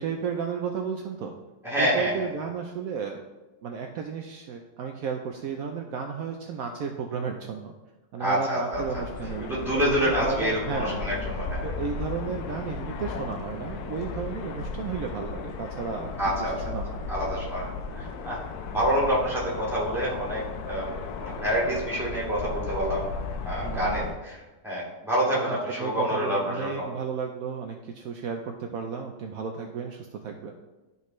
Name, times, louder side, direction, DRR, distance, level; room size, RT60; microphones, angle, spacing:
voice 1, 0.0-1.3 1.8-3.3 3.6-7.7 8.1-11.2 11.6-17.0 23.6-24.1 25.5-30.5, right 6 dB, 70° right, 3 dB, 1.0 m, -33 dB
voice 2, 1.6-2.3 8.2-9.0 9.5-11.6 16.2-16.5 17.1-18.4 18.7-20.4 20.7-20.9 21.2-23.0 23.5-26.9, equal, ahead, -6 dB, 2.0 m, -27 dB
sound 1, 8.7-24.1, left 4 dB, 75° left, 1.1 m, -35 dB
12.0 x 4.1 x 3.1 m, 1.1 s
omnidirectional pair, 1.7 m